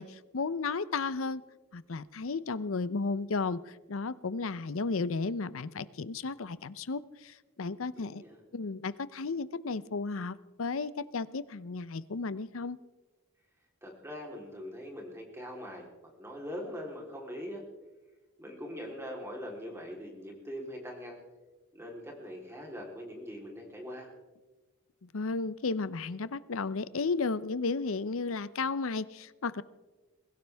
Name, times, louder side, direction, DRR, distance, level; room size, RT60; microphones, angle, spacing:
voice 1, 0.0-1.4 1.7-8.2 8.5-12.8 25.1-29.6, left 4 dB, 70° left, 17 dB, 0.6 m, -34 dB
voice 2, 7.9-8.4 13.8-15.9 16.2-17.6 18.4-21.2 21.7-24.1, equal, 15° right, -1 dB, 3.5 m, -42 dB
22.0 x 16.5 x 3.5 m, 1.1 s
head